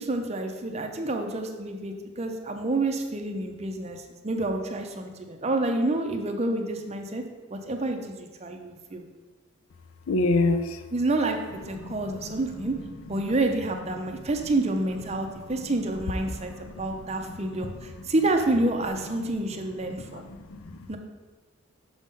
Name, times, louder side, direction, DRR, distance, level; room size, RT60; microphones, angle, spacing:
voice 1, 0.0-7.2 7.5-9.0 10.9-12.8 13.1-20.3 20.9-21.0, right 2 dB, 30° right, 4 dB, 0.5 m, -28 dB
voice 2, 10.1-10.8 11.8-12.3 16.4-16.9 17.4-17.7 19.9-20.2 20.5-20.9, left 2 dB, 80° left, 10 dB, 0.5 m, -28 dB
6.1 x 3.7 x 5.4 m, 1.3 s
head